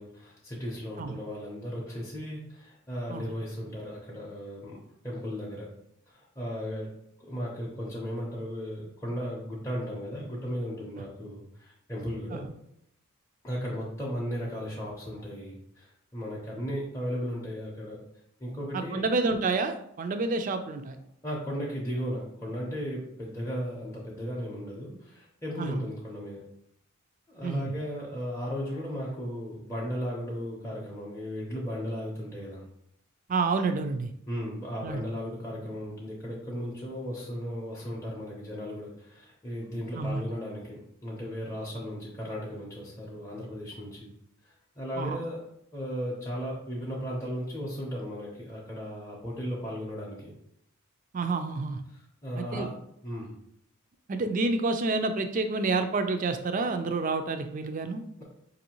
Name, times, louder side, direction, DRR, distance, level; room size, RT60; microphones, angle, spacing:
voice 1, 0.0-4.8 5.0-5.7 6.1-6.9 7.2-12.5 13.4-18.0 18.4-19.1 21.2-26.4 27.3-32.6 34.3-44.1 44.4-45.4 45.7-50.3 51.9-52.7 53.0-53.3, equal, 15° left, -6 dB, 0.6 m, -36 dB
voice 2, 18.7-21.0 25.6-25.8 27.4-27.7 33.3-34.1 34.8-35.0 39.9-40.2 45.0-45.2 51.1-51.8 52.4-52.7 54.1-58.0, right 3 dB, 35° right, 8 dB, 0.3 m, -29 dB
5.3 x 2.6 x 2.9 m, 0.74 s
head